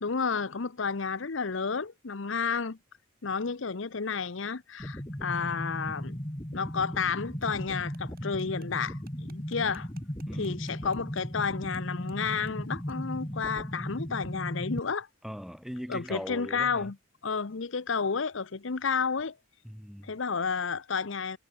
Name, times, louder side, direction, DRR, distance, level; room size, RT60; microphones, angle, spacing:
voice 1, 0.0-2.8 3.2-6.2 6.5-9.9 10.4-15.1 15.9-16.9 17.2-19.4 20.0-21.4, left 5 dB, 65° left, 0.8 m, -31 dB
sound 1, 4.8-14.8, equal, 20° left, 2.7 m, -37 dB
sound 2, 7.4-11.8 12.1-12.2 12.5-12.6 12.9-13.0, right 6 dB, 45° right, 6.0 m, -59 dB
voice 2, 10.3-10.6 15.2-16.9 19.6-20.1, equal, ahead, 6.2 m, -40 dB
head